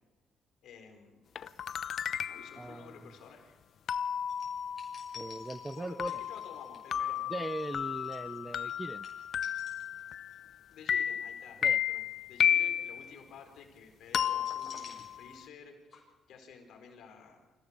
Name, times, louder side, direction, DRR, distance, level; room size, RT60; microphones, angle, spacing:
voice 1, 0.6-1.2 2.3-3.6 5.8-7.2 10.7-17.5, left 6 dB, 75° left, 4 dB, 4.3 m, -52 dB
sound 1, 1.4-2.7 3.9-10.6 10.9-13.1 14.1-15.4, left 9 dB, 60° left, 0.7 m, -33 dB
voice 2, 2.6-2.9 5.1-6.1 7.3-9.1 11.6-11.8, right 2 dB, 15° right, 16 dB, 0.7 m, -39 dB
sound 2, 4.3-10.4 10.7-11.0 14.1-15.7 15.9-16.0, left 5 dB, 45° left, 6.2 m, -52 dB
25.5 x 16.0 x 6.8 m, 1.2 s
cardioid pair, 90°, 0 cm